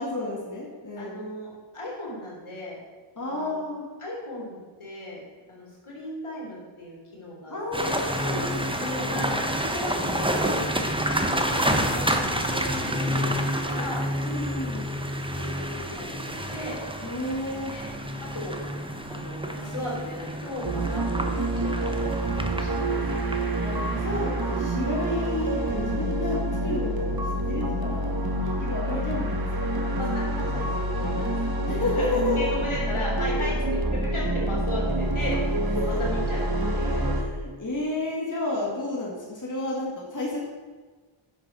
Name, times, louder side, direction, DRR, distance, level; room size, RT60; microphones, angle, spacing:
voice 1, 0.0-1.2 3.2-3.9 7.5-9.3 14.2-14.9 17.0-17.7 21.3-21.4 21.7-21.9 23.6-28.2 28.6-30.0 31.7-32.5 33.4-33.5 35.7-36.0 36.5-40.5, left 2 dB, 40° left, -4 dB, 2.3 m, -31 dB
voice 2, 1.0-1.5 1.7-2.8 3.2-3.6 4.0-5.2 5.5-8.0 9.1-10.4 11.0-14.0 15.4-16.8 17.7-17.8 18.2-18.6 19.1-22.2 22.5-23.2 29.9-31.4 31.8-33.6 33.9-36.5 36.7-37.2, left 1 dB, 75° left, -4 dB, 3.8 m, -36 dB
sound 1, 7.7-24.9, equal, 10° right, 1.1 m, -29 dB
sound 2, 20.6-37.2, right 1 dB, 45° right, 1.4 m, -27 dB
10.0 x 6.6 x 6.4 m, 1.4 s
wide cardioid pair, 55°, 49 cm